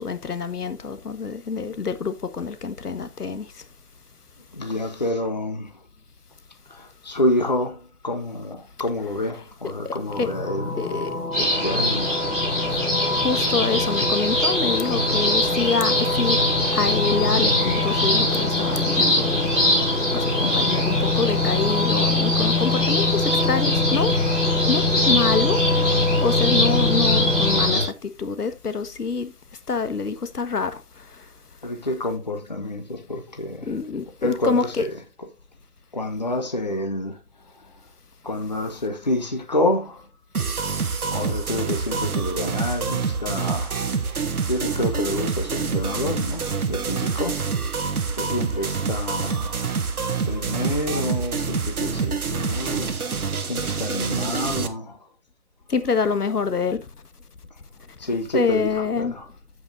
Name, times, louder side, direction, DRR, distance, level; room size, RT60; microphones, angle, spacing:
voice 1, 0.0-3.4 9.8-10.3 10.8-11.1 13.2-16.4 16.7-19.5 20.1-24.1 24.7-25.6 26.2-29.3 29.7-30.8 33.6-34.9 55.7-56.8 58.3-59.1, left 5 dB, 85° left, 1.5 m, -26 dB
voice 2, 4.5-5.8 6.7-12.2 31.6-33.7 34.2-34.9 35.9-37.2 37.5-37.7 38.2-40.1 41.1-43.8 44.5-47.4 48.1-49.7 50.3-55.1 58.0-59.3, left 1 dB, 30° left, 0.9 m, -28 dB
sound 1, 10.1-27.7, left 3 dB, 65° left, 3.0 m, -26 dB
sound 2, 11.3-27.8, left 1 dB, ahead, 2.5 m, -23 dB
sound 3, 40.3-54.7, right 5 dB, 70° right, 1.4 m, -26 dB
15.5 x 5.3 x 2.6 m
hypercardioid pair, 175°, 45 cm